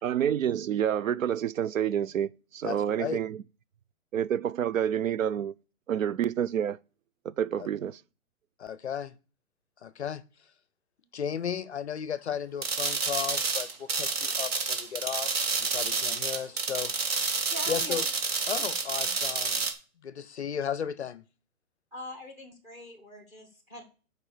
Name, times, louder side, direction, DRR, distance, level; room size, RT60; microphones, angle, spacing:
voice 1, 0.0-3.4 4.1-5.5 5.9-6.8 7.2-8.0, right 9 dB, 65° right, 0.5 m, -28 dB
voice 2, 2.6-3.2 7.6-7.7 8.6-9.1 9.8-10.2 11.1-16.9 17.7-18.0 18.5-19.7 20.0-21.2, left 8 dB, 50° left, 0.6 m, -35 dB
sound 1, 12.6-19.7, right 4 dB, 45° right, 1.6 m, -29 dB
voice 3, 17.5-18.0 21.9-23.8, left 1 dB, 5° right, 1.2 m, -42 dB
7.5 x 4.8 x 6.6 m
hypercardioid pair, 170°, 43 cm